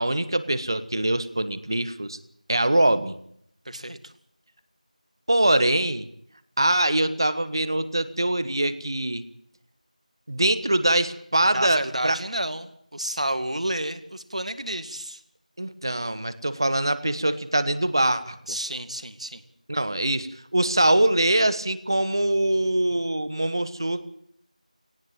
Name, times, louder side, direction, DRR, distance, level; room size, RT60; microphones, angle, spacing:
voice 1, 0.0-2.2 2.5-3.1 5.3-6.1 6.6-9.2 10.3-12.2 15.6-18.4 19.7-24.0, right 1 dB, 35° right, 14 dB, 1.4 m, -23 dB
voice 2, 3.7-4.1 11.5-15.2 18.5-19.4, right 1 dB, 55° right, 11 dB, 2.2 m, -31 dB
19.0 x 16.5 x 9.0 m, 0.67 s
figure-of-eight pair, 175°, 4 cm